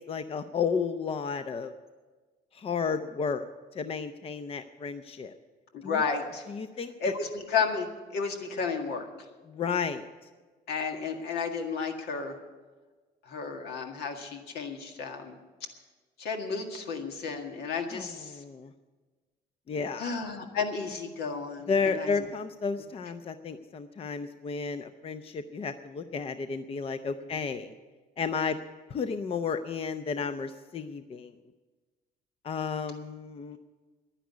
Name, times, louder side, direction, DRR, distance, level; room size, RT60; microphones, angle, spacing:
voice 1, 0.1-1.7 2.5-5.3 5.8-6.0 6.5-7.1 9.5-10.1 17.9-18.7 19.7-20.0 21.7-27.7 28.2-28.6 28.9-31.3 32.4-33.6, left 5 dB, 35° left, 10 dB, 0.6 m, -32 dB
voice 2, 5.7-6.4 7.0-9.1 10.7-12.4 13.3-15.4 16.2-18.4 20.0-22.1, left 5 dB, 75° left, 4 dB, 1.9 m, -32 dB
10.5 x 10.0 x 9.5 m, 1.3 s
cardioid pair, 110°, 17 cm